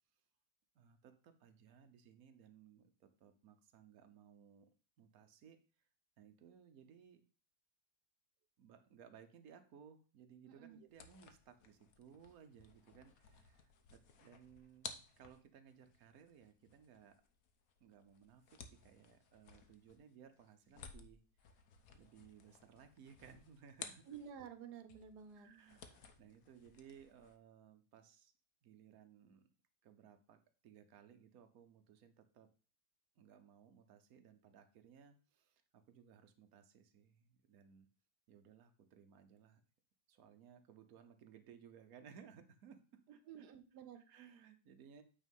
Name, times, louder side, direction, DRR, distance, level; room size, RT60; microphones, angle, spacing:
voice 1, 0.7-4.7 5.0-5.9 6.2-7.2 8.6-17.2 17.8-21.6 21.9-24.0 25.3-28.3 28.6-29.4 29.8-30.4 30.6-32.5 33.1-37.9 38.3-39.6 40.1-42.8 43.1-43.5 43.9-45.0, right 7 dB, 65° right, 7 dB, 1.3 m, -61 dB
sound 1, 10.9-24.6 24.9-27.4, left 6 dB, 65° left, 1.3 m, -57 dB
voice 2, 24.1-25.5 43.3-44.0, right 8 dB, 85° right, 10 dB, 1.4 m, -52 dB
8.8 x 3.7 x 5.4 m, 0.38 s
omnidirectional pair, 1.7 m